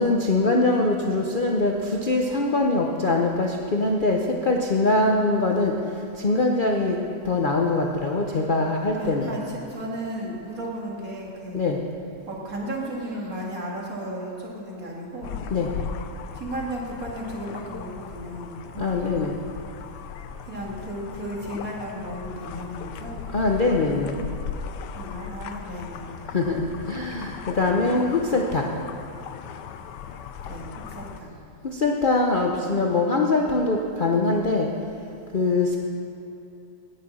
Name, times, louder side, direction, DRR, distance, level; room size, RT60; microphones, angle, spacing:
voice 1, 0.0-5.7 6.2-7.0 7.2-9.3 11.5-11.8 15.5-15.7 18.8-19.4 23.3-24.2 26.3-28.7 31.6-34.7 35.3-35.8, left 2 dB, 45° left, 0 dB, 0.7 m, -23 dB
voice 2, 8.9-11.7 12.3-15.4 16.3-19.1 20.4-23.2 24.9-26.2 30.4-31.3, right 1 dB, 55° right, -3 dB, 2.4 m, -34 dB
sound 1, 15.2-31.2, left 7 dB, 90° left, 1.3 m, -38 dB
17.5 x 6.7 x 6.2 m, 2.8 s
omnidirectional pair, 1.8 m